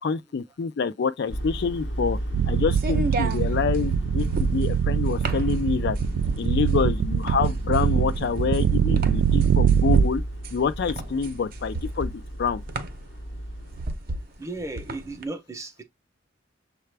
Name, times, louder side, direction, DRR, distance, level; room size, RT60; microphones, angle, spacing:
voice 1, 0.0-2.2 2.5-6.0 6.4-10.2 10.5-12.1 12.4-12.6, left 5 dB, 60° left, 0.4 m, -27 dB
sound 1, 1.3-13.8, right 1 dB, 75° left, 0.9 m, -34 dB
sound 2, 1.4-15.2, right 1 dB, 50° right, 0.7 m, -34 dB
sound 3, 2.3-10.1, right 8 dB, 80° right, 0.3 m, -23 dB
voice 2, 14.4-15.8, right 2 dB, 15° right, 0.6 m, -35 dB
6.5 x 2.3 x 3.3 m
head